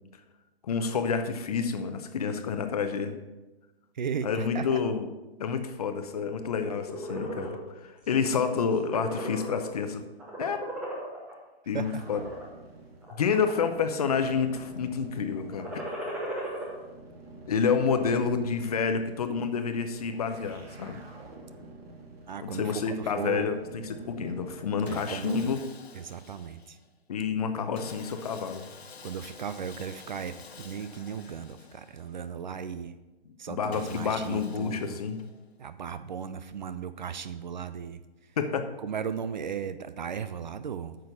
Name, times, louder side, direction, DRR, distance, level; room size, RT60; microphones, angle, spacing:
voice 1, 0.7-3.2 4.2-5.1 5.4-10.0 10.4-10.6 11.7-12.2 13.2-15.7 17.5-21.0 22.4-23.6 24.1-25.6 27.1-28.6 33.5-35.2 38.4-38.6, left 6 dB, 40° left, 8 dB, 0.8 m, -29 dB
voice 2, 3.9-4.8 11.7-12.0 17.9-18.2 22.3-23.5 24.9-25.5 25.9-26.8 29.0-32.9 33.4-35.0 35.6-38.4 38.8-41.0, right 7 dB, 50° right, 12 dB, 0.5 m, -36 dB
sound 1, 6.6-7.6 8.0-8.3 8.6-9.8 10.2-11.3 12.0-12.4 13.0-13.8 14.1-14.6 15.4-16.7, right 1 dB, 5° right, 0.7 m, -36 dB
sound 2, 11.8-25.4, right 3 dB, 70° right, 2.2 m, -48 dB
Sawing, 24.9-26.9 27.8-32.3 33.7-35.5, left 5 dB, 85° left, 1.2 m, -49 dB
9.2 x 6.5 x 5.4 m, 1.1 s
hypercardioid pair, 165°, 31 cm